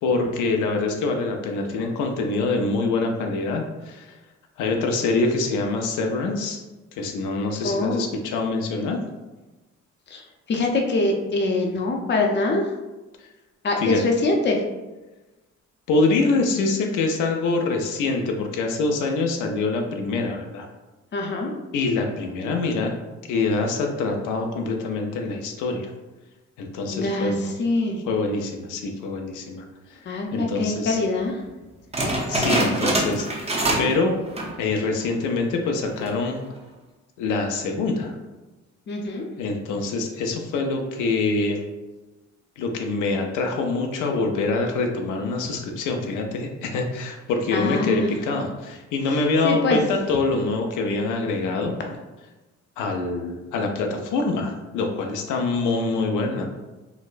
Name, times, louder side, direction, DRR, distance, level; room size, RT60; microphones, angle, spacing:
voice 1, 0.0-4.2 4.6-6.6 7.0-9.0 13.8-14.0 15.9-20.7 21.7-22.9 23.3-25.9 26.6-27.5 28.0-29.6 29.9-30.0 30.3-31.0 32.3-34.2 34.6-36.4 37.2-38.1 39.4-41.7 42.6-51.7 52.8-56.4, left 3 dB, 85° left, 3 dB, 0.5 m, -25 dB
voice 2, 7.6-8.0 10.1-10.2 10.5-12.6 13.6-14.6 21.1-21.5 26.9-28.0 30.1-31.3 38.9-39.3 47.5-48.1 49.4-49.8, left 2 dB, 35° left, 1 dB, 0.5 m, -24 dB
sound 1, 31.9-34.0 34.3-34.6 35.1-35.2 35.9-36.3, right 1 dB, 20° right, 0.7 m, -24 dB
4.0 x 2.0 x 2.5 m, 1.1 s
cardioid pair, 90°, 30 cm